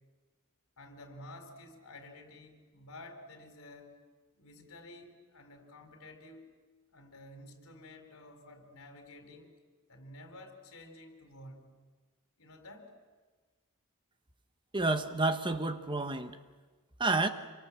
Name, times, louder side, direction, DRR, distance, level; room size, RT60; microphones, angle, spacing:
voice 1, 0.8-4.0 4.3-6.5 6.9-9.5 9.9-11.7 12.4-12.9, left 1 dB, 70° left, 5 dB, 4.3 m, -51 dB
voice 2, 14.7-16.4 17.0-17.3, right 2 dB, 20° right, 8 dB, 1.1 m, -29 dB
27.0 x 25.0 x 7.5 m, 1.4 s
head